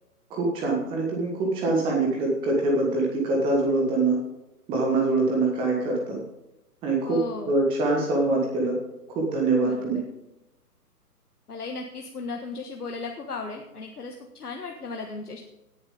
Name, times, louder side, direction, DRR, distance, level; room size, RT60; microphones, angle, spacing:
voice 1, 0.3-4.2 4.7-6.2 6.8-8.7 9.1-10.0, right 2 dB, 10° right, -1 dB, 1.3 m, -24 dB
voice 2, 7.0-7.6 9.6-10.0 11.5-15.4, left 4 dB, 70° left, 2 dB, 1.5 m, -36 dB
17.5 x 7.0 x 3.7 m, 0.94 s
figure-of-eight pair, 135°, 47 cm